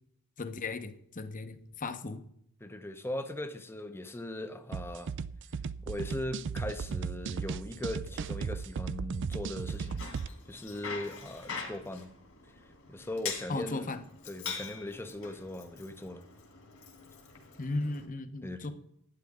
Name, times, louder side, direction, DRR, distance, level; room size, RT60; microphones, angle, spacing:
voice 1, 0.4-2.2 13.5-14.0 17.6-18.7, left 3 dB, 35° left, 0.9 m, -36 dB
voice 2, 2.6-5.1 5.8-10.1 10.5-12.2 12.4-12.5 12.9-13.9 14.3-16.2 18.4-18.7, left 1 dB, 10° left, 0.7 m, -39 dB
sound 1, 4.7-10.3, right 6 dB, 55° right, 0.4 m, -36 dB
Bicycle, 9.7-18.0, left 6 dB, 65° left, 2.8 m, -44 dB
11.5 x 9.7 x 3.6 m
head